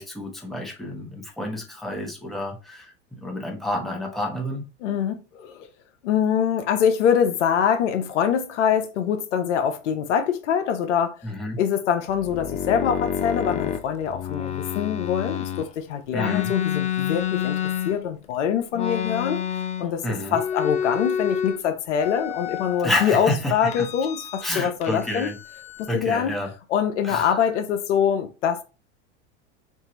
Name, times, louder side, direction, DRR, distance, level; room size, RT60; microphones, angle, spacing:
voice 1, 0.0-4.6 11.2-11.6 16.1-16.5 20.0-20.4 22.8-23.9 24.4-25.4 25.9-26.5 27.0-27.4, left 1 dB, ahead, 1.0 m, -29 dB
voice 2, 4.8-5.7 6.0-11.2 11.6-17.6 17.8-19.4 19.8-20.0 20.3-25.3 25.8-26.3 26.7-28.6, left 8 dB, 80° left, 0.8 m, -24 dB
sound 1, 12.1-15.7 16.1-18.3 18.7-20.0 20.3-21.6 22.0-23.1 23.7-24.6 24.8-26.0, left 9 dB, 20° left, 0.3 m, -29 dB
4.7 x 2.6 x 3.0 m
hypercardioid pair, 105°, 36 cm